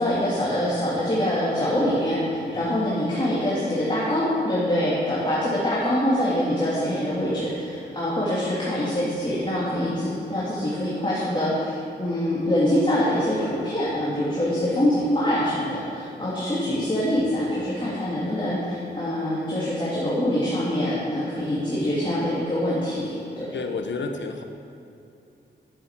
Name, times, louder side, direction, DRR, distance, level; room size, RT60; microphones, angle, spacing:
voice 1, 0.0-23.1 23.4-23.5, left 1 dB, 25° left, -8 dB, 2.9 m, -24 dB
voice 2, 23.5-24.4, left 4 dB, 75° left, 5 dB, 1.2 m, -31 dB
11.5 x 8.5 x 7.5 m, 2.7 s
wide cardioid pair, 105°, 19 cm